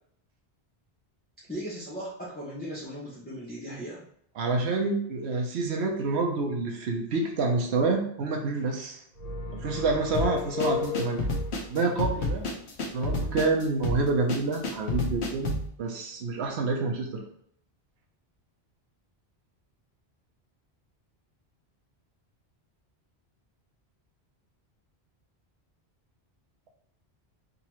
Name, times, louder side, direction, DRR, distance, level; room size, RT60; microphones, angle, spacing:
voice 1, 1.5-4.0, equal, 10° left, -8 dB, 0.9 m, -37 dB
voice 2, 4.4-9.0 9.6-11.3 11.7-12.5 12.9-17.2, right 3 dB, 90° right, 1 dB, 1.0 m, -28 dB
sound 1, 9.1-11.6, left 6 dB, 40° left, 0.8 m, -33 dB
sound 2, 10.1-15.7, left 2 dB, 90° left, 1.1 m, -30 dB
3.9 x 2.8 x 2.9 m, 0.69 s
omnidirectional pair, 1.1 m